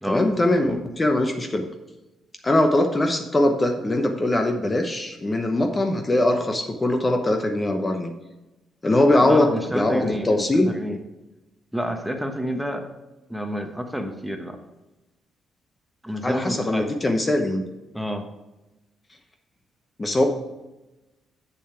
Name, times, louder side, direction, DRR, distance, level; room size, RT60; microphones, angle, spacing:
voice 1, 0.1-1.6 2.4-8.1 8.8-10.7 16.2-17.7 20.0-20.3, left 1 dB, 25° left, 5 dB, 0.9 m, -21 dB
voice 2, 9.2-11.0 11.7-12.9 13.3-14.6 16.0-16.9 17.9-18.3, equal, 5° right, 5 dB, 1.1 m, -29 dB
7.1 x 6.9 x 4.4 m, 1.0 s
cardioid pair, 90°, 0 cm